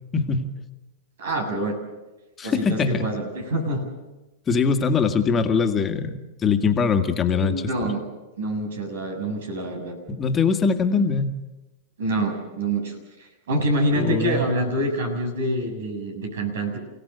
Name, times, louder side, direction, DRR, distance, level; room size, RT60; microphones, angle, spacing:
voice 1, 0.1-0.5 2.4-3.1 4.5-7.9 10.1-11.3 13.9-14.5, left 5 dB, 25° left, 5 dB, 1.9 m, -22 dB
voice 2, 1.2-1.7 2.4-3.9 7.3-8.0 8.4-9.9 12.0-16.8, right 1 dB, 80° right, 5 dB, 6.8 m, -26 dB
29.5 x 17.0 x 6.9 m, 1.1 s
hypercardioid pair, 115°, 0 cm